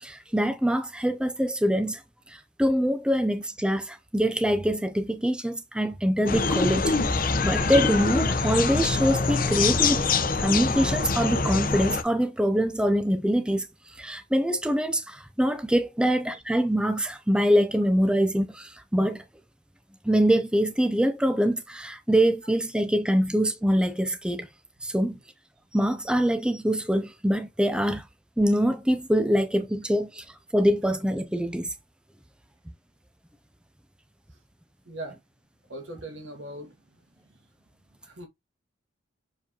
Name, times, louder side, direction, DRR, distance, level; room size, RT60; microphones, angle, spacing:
voice 1, 0.0-2.0 2.3-10.1 10.4-13.7 14.0-19.2 20.1-24.5 24.8-25.2 25.7-28.0 28.4-30.2 30.5-31.7, equal, 5° right, 0.5 m, -24 dB
sound 1, 6.3-12.0, left 4 dB, 45° left, 0.9 m, -24 dB
voice 2, 34.9-35.2 35.7-36.8 37.2-37.3 38.0-38.3, right 1 dB, 70° right, 1.9 m, -39 dB
7.0 x 4.8 x 2.9 m
head